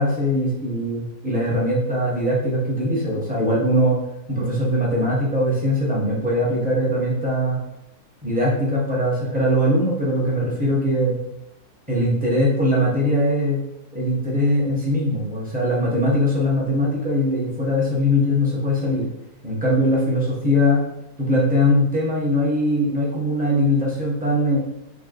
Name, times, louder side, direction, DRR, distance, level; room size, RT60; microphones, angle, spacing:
voice 1, 0.0-4.0 4.3-7.6 8.2-11.2 11.9-13.6 13.9-19.0 19.4-20.8 21.2-24.6, equal, 10° right, -6 dB, 0.7 m, -21 dB
3.4 x 2.3 x 3.8 m, 0.86 s
omnidirectional pair, 1.7 m